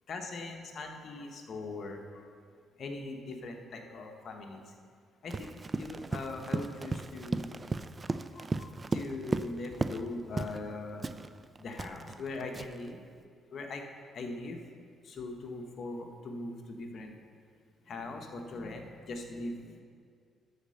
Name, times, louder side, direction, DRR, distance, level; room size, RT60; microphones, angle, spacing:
voice 1, 0.1-2.0 2.8-4.6 5.2-5.5 5.8-7.6 8.3-11.2 11.6-13.0 13.5-13.8 14.1-14.6 15.1-17.1 17.9-19.5, left 3 dB, 55° left, 3 dB, 1.2 m, -40 dB
Run, 5.3-10.1 10.4-10.6 11.0-12.9, right 3 dB, 30° right, 0.4 m, -35 dB
12.0 x 4.3 x 6.4 m, 2.1 s
cardioid pair, 90°, 0 cm